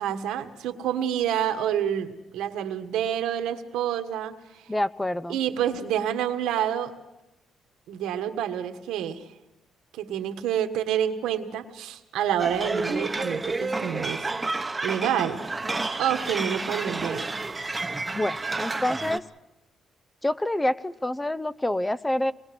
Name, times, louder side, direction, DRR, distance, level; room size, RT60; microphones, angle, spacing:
voice 1, 0.0-4.6 5.3-6.9 7.9-9.3 9.9-14.3 14.8-15.4 16.0-17.3, right 10 dB, 90° right, 7 dB, 1.6 m, -28 dB
voice 2, 4.7-5.4 18.1-19.2 20.2-22.3, left 1 dB, 10° left, 16 dB, 0.7 m, -27 dB
sound 1, 12.4-19.2, right 3 dB, 20° right, 1.1 m, -30 dB
26.0 x 21.0 x 6.2 m, 0.98 s
cardioid pair, 90°, 0 cm